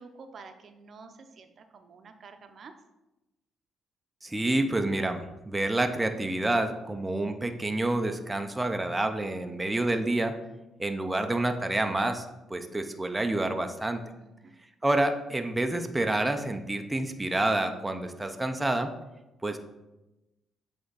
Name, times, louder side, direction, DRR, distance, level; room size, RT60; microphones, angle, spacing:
voice 1, 0.0-2.7 14.2-14.5, right 4 dB, 50° right, 7 dB, 0.7 m, -49 dB
voice 2, 4.2-10.3 10.8-14.0 14.8-18.9 19.4-19.6, right 2 dB, 15° right, 6 dB, 0.6 m, -28 dB
7.8 x 3.5 x 4.0 m, 1.0 s
cardioid pair, 90°, 0 cm